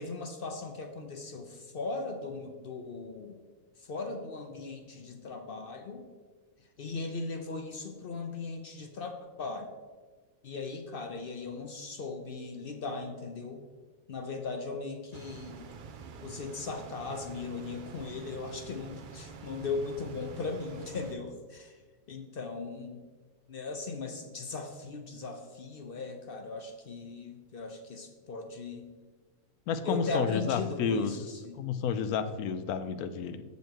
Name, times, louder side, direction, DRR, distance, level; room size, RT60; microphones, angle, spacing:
voice 1, 0.0-3.4 3.8-6.1 6.8-9.7 10.4-13.6 14.1-15.6 16.2-21.7 22.1-23.0 23.5-28.8 29.8-31.6, left 3 dB, 55° left, 5 dB, 0.6 m, -38 dB
sound 1, 15.1-21.1, right 5 dB, 90° right, 0.4 m, -47 dB
voice 2, 29.7-33.4, left 6 dB, 85° left, 11 dB, 1.1 m, -31 dB
7.8 x 5.5 x 4.5 m, 1.4 s
omnidirectional pair, 1.5 m